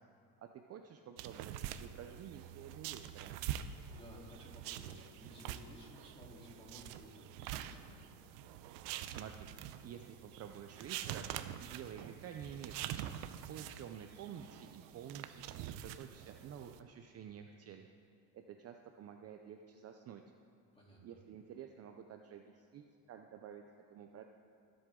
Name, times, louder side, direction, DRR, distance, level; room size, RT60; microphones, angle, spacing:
voice 1, 0.4-3.4 9.0-9.5 9.8-13.1 13.5-17.9 18.3-20.2 21.0-23.6 23.9-24.2, right 8 dB, 35° right, 5 dB, 0.6 m, -50 dB
sound 1, 1.2-16.8, right 11 dB, 80° right, 0.7 m, -46 dB
voice 2, 3.7-8.2 20.7-21.1, equal, 15° left, -5 dB, 3.4 m, -56 dB
22.0 x 7.9 x 3.8 m, 2.7 s
cardioid pair, 130°, 42 cm